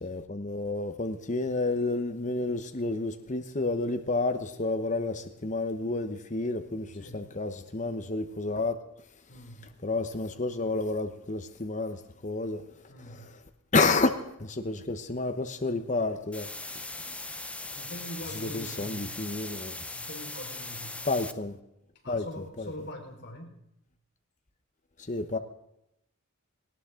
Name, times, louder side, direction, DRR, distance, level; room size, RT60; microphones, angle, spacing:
voice 1, 0.0-8.8 9.8-12.6 13.0-13.4 13.7-16.5 17.1-17.2 18.3-19.7 21.0-21.6 22.1-22.3 22.6-22.7 25.1-25.4, left 3 dB, 35° left, 1.0 m, -30 dB
voice 2, 9.3-9.7 12.9-13.3 17.7-19.1 19.9-21.0 22.0-23.5, left 1 dB, 50° left, 4.5 m, -43 dB
sound 1, 16.3-21.3, left 2 dB, 5° left, 0.6 m, -39 dB
19.0 x 18.5 x 3.8 m
head